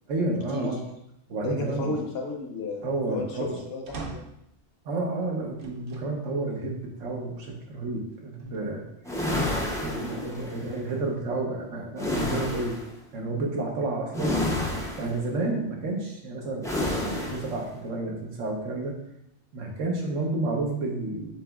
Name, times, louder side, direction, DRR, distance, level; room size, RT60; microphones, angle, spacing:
voice 1, 0.1-0.8 1.3-1.9 2.8-3.6 4.8-8.8 9.8-12.8 13.1-16.7 17.2-18.9 19.5-21.3, right 2 dB, 80° right, 0 dB, 1.3 m, -30 dB
voice 2, 1.4-4.2, left 3 dB, 60° left, 2 dB, 0.9 m, -33 dB
sound 1, 3.9-4.5 5.6-6.1 6.8-6.9 8.1-8.9, right 3 dB, 55° right, 0.7 m, -41 dB
sound 2, 9.0-10.7 12.0-12.9 14.1-15.2 16.6-17.6, left 1 dB, 5° left, 0.3 m, -29 dB
7.3 x 2.9 x 2.3 m, 0.78 s
omnidirectional pair, 1.3 m